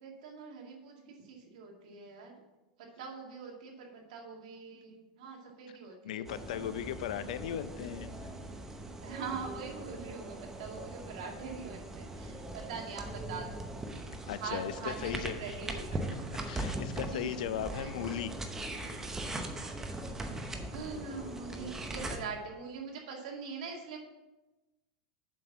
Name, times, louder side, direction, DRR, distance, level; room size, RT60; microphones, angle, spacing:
voice 1, 0.0-2.4 3.0-6.3 7.3-7.4 9.0-13.6 14.4-16.0 17.1-17.4 17.7-17.9 20.7-24.0, right 5 dB, 70° right, 0 dB, 2.1 m, -43 dB
voice 2, 6.0-8.3 14.3-15.8 16.1-16.2 16.4-18.4, left 9 dB, 75° left, 13 dB, 0.6 m, -37 dB
sound 1, 6.3-22.2, right 1 dB, 10° right, 0.8 m, -40 dB
7.6 x 5.4 x 5.8 m, 1.1 s
supercardioid pair, 145°, 4 cm